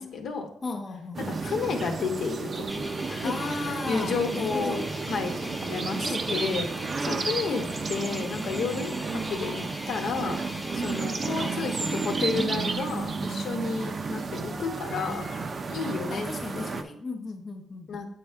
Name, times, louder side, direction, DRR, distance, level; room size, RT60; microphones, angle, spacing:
voice 1, 0.0-0.5 1.2-2.7 3.1-6.7 7.0-10.4 10.7-15.3 15.7-16.3 16.5-16.8 17.9-18.1, left 5 dB, 65° left, 1.0 m, -31 dB
voice 2, 0.6-1.4 3.2-4.9 6.0-6.8 7.1-7.6 11.4-12.1 14.8-17.9, left 3 dB, 30° left, 0.7 m, -37 dB
sound 1, 1.1-16.8, right 4 dB, 40° right, 0.5 m, -32 dB
sound 2, 2.7-12.5, left 1 dB, 5° left, 0.8 m, -40 dB
8.4 x 4.4 x 3.5 m
cardioid pair, 90°, 0 cm